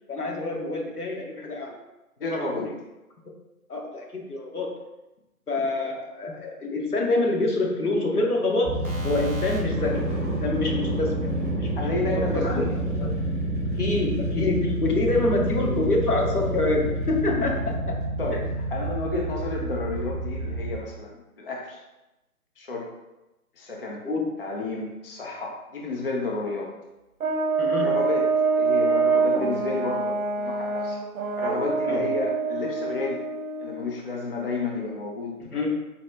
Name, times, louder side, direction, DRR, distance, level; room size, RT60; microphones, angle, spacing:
voice 1, 0.1-1.8 2.2-2.7 3.7-4.8 5.5-10.1 10.4-11.3 11.6-11.9 12.2-13.2 13.8-18.0 24.0-24.4 27.6-28.0 31.9-32.1 35.5-35.8, left 2 dB, 85° left, 0 dB, 1.0 m, -26 dB
voice 2, 2.2-2.7 11.8-12.7 17.3-17.5 18.2-21.8 22.6-22.9 23.6-24.0 24.4-26.7 27.8-28.3 28.6-31.0 31.4-33.2 33.6-35.3, left 2 dB, 40° left, -1 dB, 0.5 m, -31 dB
sound 1, 8.6-20.7, right 1 dB, 5° right, 0.6 m, -28 dB
Brass instrument, 27.2-33.9, right 4 dB, 70° right, 0.6 m, -25 dB
4.0 x 2.3 x 3.3 m, 0.99 s
figure-of-eight pair, 145°, 44 cm